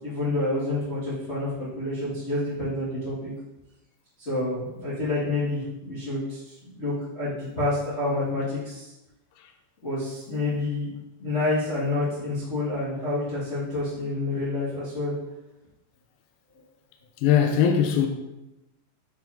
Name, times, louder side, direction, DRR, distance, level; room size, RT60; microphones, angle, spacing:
voice 1, 0.0-3.3 4.2-8.9 9.8-10.9 11.2-15.1, left 2 dB, 50° left, 0.7 m, -28 dB
voice 2, 17.2-18.1, left 8 dB, 80° left, 2.2 m, -21 dB
7.8 x 4.4 x 2.7 m
omnidirectional pair, 4.5 m